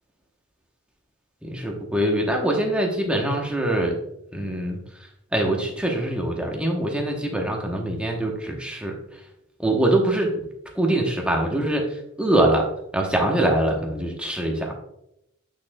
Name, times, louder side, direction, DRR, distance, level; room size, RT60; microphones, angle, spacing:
voice 1, 1.4-3.9 4.3-4.8 5.3-9.0 9.6-10.4 10.7-11.9 12.2-14.8, right 1 dB, 5° right, 0 dB, 0.8 m, -23 dB
8.5 x 6.1 x 2.2 m, 0.81 s
head